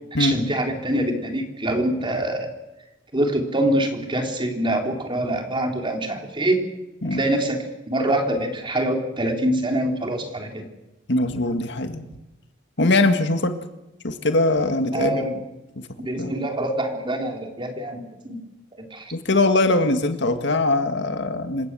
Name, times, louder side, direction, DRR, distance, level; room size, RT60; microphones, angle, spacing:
voice 1, 0.2-2.5 3.1-6.6 7.1-10.7 14.9-15.3 16.0-18.4 18.9-19.1, right 1 dB, 25° right, 3 dB, 3.7 m, -25 dB
voice 2, 11.1-12.0 12.8-13.5 14.0-15.4 16.2-16.3 19.1-21.7, left 2 dB, 65° left, 7 dB, 1.9 m, -21 dB
27.5 x 16.0 x 7.7 m, 1.0 s
head